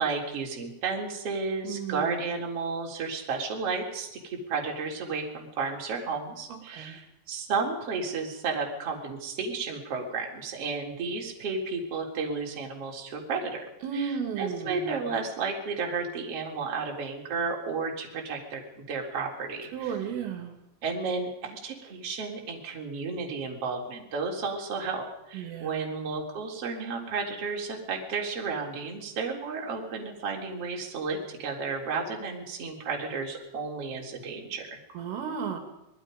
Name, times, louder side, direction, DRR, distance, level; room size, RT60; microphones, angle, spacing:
voice 1, 0.0-13.6 13.9-20.0 20.8-34.8, right 4 dB, 30° right, 0 dB, 4.2 m, -32 dB
voice 2, 1.6-2.4 6.5-7.0 13.8-15.2 19.7-20.6 25.3-26.1 34.9-35.6, right 7 dB, 75° right, 5 dB, 5.0 m, -34 dB
27.5 x 20.5 x 5.3 m, 0.89 s
omnidirectional pair, 6.0 m